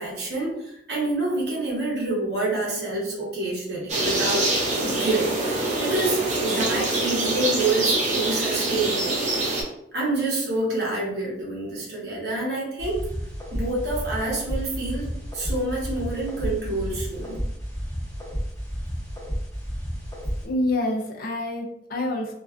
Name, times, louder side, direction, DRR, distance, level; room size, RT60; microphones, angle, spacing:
voice 1, 0.0-4.5 4.8-9.2 9.9-13.1 13.5-17.4, right 2 dB, 65° right, -5 dB, 0.9 m, -27 dB
sound 1, 3.9-9.6, right 2 dB, 40° right, 0.5 m, -25 dB
sound 2, 12.8-20.5, equal, 20° left, 0.7 m, -31 dB
voice 2, 20.4-22.3, left 1 dB, 50° left, 0 dB, 0.4 m, -27 dB
2.4 x 2.2 x 2.3 m, 0.78 s
head